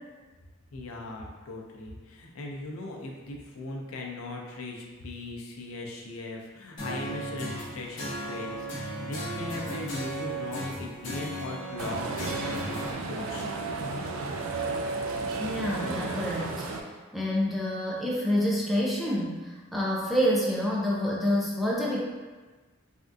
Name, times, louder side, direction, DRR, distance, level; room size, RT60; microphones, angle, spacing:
voice 1, 0.7-12.8 13.1-13.5, left 2 dB, 85° left, 0 dB, 0.5 m, -39 dB
sound 1, 6.8-12.9, right 1 dB, 60° left, 0.8 m, -36 dB
sound 2, 11.8-16.8, right 3 dB, 75° right, 0.3 m, -33 dB
voice 2, 15.4-16.6 17.1-22.0, equal, ahead, -5 dB, 0.4 m, -27 dB
3.4 x 2.4 x 2.5 m, 1.3 s
head